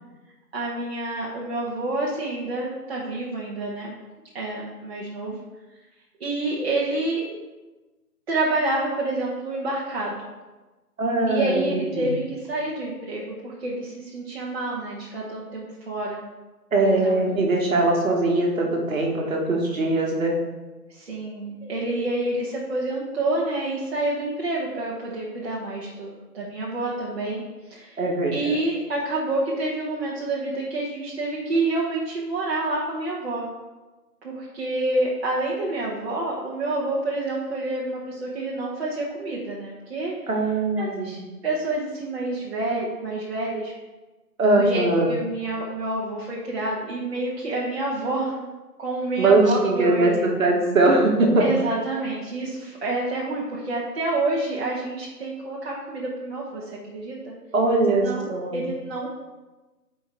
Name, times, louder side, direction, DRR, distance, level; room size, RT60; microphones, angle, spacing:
voice 1, 0.5-3.9 4.3-5.4 6.2-7.4 8.3-10.2 11.3-16.2 16.8-17.1 20.9-27.4 27.7-28.0 28.3-33.5 34.2-40.1 40.8-43.7 44.6-48.5 48.8-50.4 51.4-57.3 58.0-59.1, right 2 dB, 40° right, -6 dB, 1.2 m, -28 dB
voice 2, 11.0-12.1 16.7-20.4 28.0-28.3 40.3-41.2 44.4-45.1 49.2-51.4 57.5-58.6, right 2 dB, 55° right, 0 dB, 1.6 m, -21 dB
9.2 x 4.8 x 3.5 m, 1.2 s
figure-of-eight pair, 160°, 48 cm